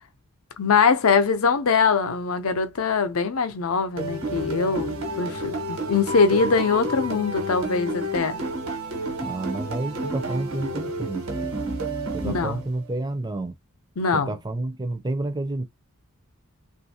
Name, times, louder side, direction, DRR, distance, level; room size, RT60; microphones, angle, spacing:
voice 1, 0.6-8.4 12.2-12.6 14.0-14.3, left 5 dB, 75° left, 0.6 m, -22 dB
sound 1, 4.0-12.9, right 1 dB, 70° right, 1.2 m, -30 dB
voice 2, 9.2-11.5 12.1-13.6 14.1-15.6, right 2 dB, 20° right, 0.5 m, -30 dB
3.3 x 2.5 x 2.7 m
head